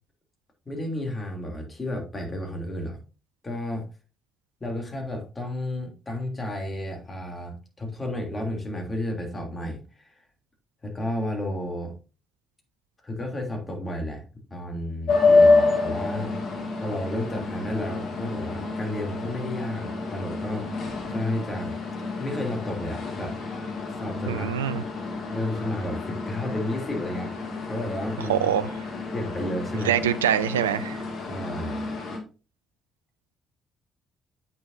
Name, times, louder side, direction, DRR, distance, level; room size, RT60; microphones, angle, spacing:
voice 1, 0.6-3.0 3.4-3.8 4.6-10.2 10.8-11.9 13.0-14.2 14.5-16.3 16.7-21.7 22.2-23.3 23.9-24.8 25.3-27.3 27.6-28.6 29.1-30.1 31.3-31.8, left 1 dB, 25° left, 3.3 m, -32 dB
sound 1, 15.1-32.2, left 3 dB, 55° left, 2.2 m, -28 dB
voice 2, 24.3-24.8 28.3-28.7 29.8-31.0, right 9 dB, 85° right, 0.3 m, -24 dB
8.4 x 6.8 x 2.8 m
figure-of-eight pair, 45°, 0 cm